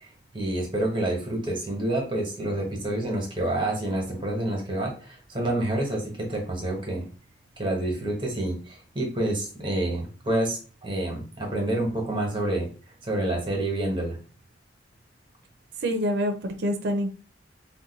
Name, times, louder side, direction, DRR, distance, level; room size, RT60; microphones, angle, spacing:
voice 1, 0.3-7.1 7.6-12.7 13.0-14.2, right 1 dB, 25° right, 0 dB, 1.0 m, -28 dB
voice 2, 15.8-17.1, equal, 60° right, 6 dB, 0.5 m, -26 dB
2.5 x 2.2 x 3.9 m, 0.38 s
head